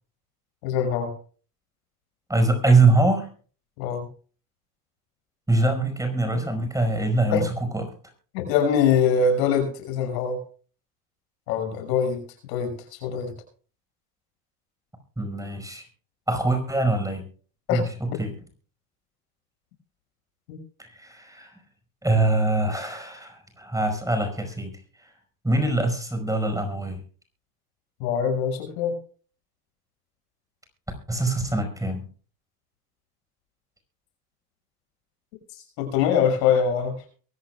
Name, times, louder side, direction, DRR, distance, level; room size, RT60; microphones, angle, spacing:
voice 1, 0.6-1.1 3.8-4.1 6.3-6.5 7.3-7.4 8.3-10.4 11.5-12.2 12.5-13.3 17.7-17.8 20.5-20.6 28.0-29.0 35.8-37.0, left 7 dB, 75° left, 4 dB, 6.3 m, -23 dB
voice 2, 2.3-3.3 5.5-7.9 15.2-15.9 16.3-17.2 17.7-17.8 18.2-18.3 20.8-21.6 22.0-24.7 25.0-25.1 25.4-27.0 31.1-32.0, right 2 dB, 5° right, 6 dB, 5.0 m, -23 dB
23.5 x 14.5 x 2.3 m, 0.40 s
supercardioid pair, 100°, 50 cm